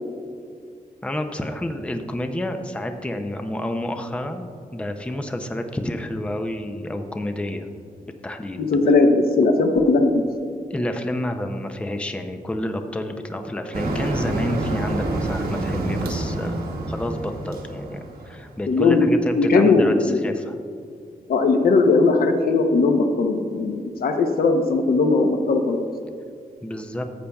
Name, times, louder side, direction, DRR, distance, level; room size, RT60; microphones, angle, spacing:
voice 1, 1.0-7.7 8.2-8.6 10.7-16.6 16.9-20.6 26.6-27.0, left 1 dB, 10° left, 6 dB, 0.5 m, -29 dB
voice 2, 8.6-10.2 18.7-20.2 21.3-25.8, left 3 dB, 80° left, 5 dB, 0.8 m, -18 dB
Motor vehicle (road), 13.7-18.7, right 2 dB, 90° right, 1.1 m, -27 dB
14.0 x 8.3 x 2.3 m, 2.3 s
wide cardioid pair, 135°, 15 cm